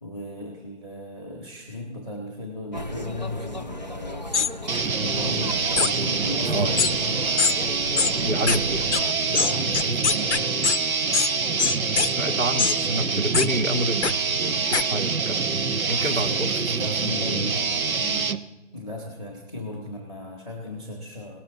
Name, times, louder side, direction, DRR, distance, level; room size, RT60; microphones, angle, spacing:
voice 1, 0.0-4.4 4.7-7.4 9.2-10.7 15.5-18.3 18.7-21.4, left 1 dB, 5° right, -2 dB, 1.0 m, -36 dB
sound 1, 2.7-9.1, left 1 dB, 35° right, 0.5 m, -36 dB
sound 2, 4.3-4.5 5.8-5.9 6.8-6.9 7.4-7.5 8.0-8.1 8.5-8.6 8.9-9.0 9.3-10.8 11.1-11.3 11.6-12.1 12.6-12.8 13.3-13.5 14.0-14.1 14.7-14.8, left 6 dB, 55° left, 0.6 m, -22 dB
sound 3, 4.7-18.4, right 5 dB, 90° right, 1.0 m, -25 dB
voice 2, 8.2-8.9 9.3-9.5 11.8-14.1 14.3-15.6 15.9-16.5, right 1 dB, 70° right, 4 dB, 1.5 m, -28 dB
19.0 x 6.9 x 3.9 m, 1.1 s
figure-of-eight pair, 170°, 41 cm